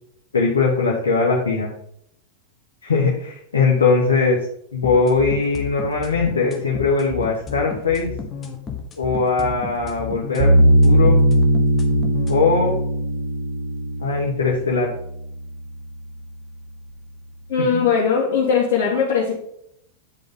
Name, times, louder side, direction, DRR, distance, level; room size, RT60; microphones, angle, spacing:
voice 1, 0.3-1.7 2.8-4.4 4.7-8.1 8.9-11.2 12.3-12.8 14.0-14.9 17.7-17.8, left 4 dB, 70° left, -2 dB, 1.3 m, -20 dB
sound 1, 4.8-12.4, left 6 dB, 20° left, 1.4 m, -32 dB
sound 2, 10.4-15.5, right 1 dB, 55° right, 1.1 m, -18 dB
voice 2, 17.5-19.4, left 6 dB, 45° left, -6 dB, 1.9 m, -19 dB
8.4 x 5.2 x 3.9 m, 0.73 s
figure-of-eight pair, 90°, 0 cm